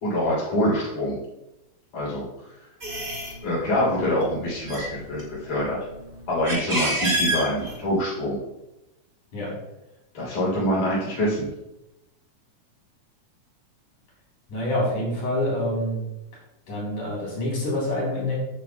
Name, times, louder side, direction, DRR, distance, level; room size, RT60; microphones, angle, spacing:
voice 1, 0.0-1.1 1.9-2.5 3.4-5.8 6.3-8.4 10.1-11.5, equal, 45° left, -7 dB, 4.3 m, -25 dB
sound 1, 2.8-3.4 4.1-4.3 4.5-5.7 6.2-8.0, right 1 dB, 20° right, 1.9 m, -27 dB
voice 2, 14.5-16.0 16.7-18.3, left 1 dB, 70° left, -5 dB, 5.4 m, -26 dB
13.5 x 8.7 x 2.4 m, 0.92 s
omnidirectional pair, 3.6 m